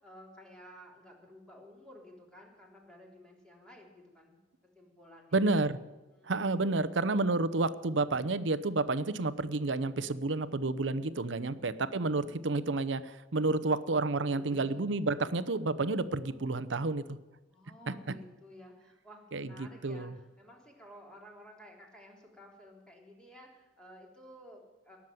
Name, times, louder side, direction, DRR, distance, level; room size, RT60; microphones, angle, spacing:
voice 1, 0.0-4.4 4.8-5.5 6.1-6.3 11.2-12.0 14.2-14.8 17.5-25.0, equal, 5° left, -1 dB, 3.5 m, -54 dB
voice 2, 5.3-5.8 6.2-17.2 17.9-18.0 19.3-20.2, right 3 dB, 85° right, 15 dB, 0.8 m, -30 dB
18.5 x 7.3 x 7.7 m, 1.2 s
head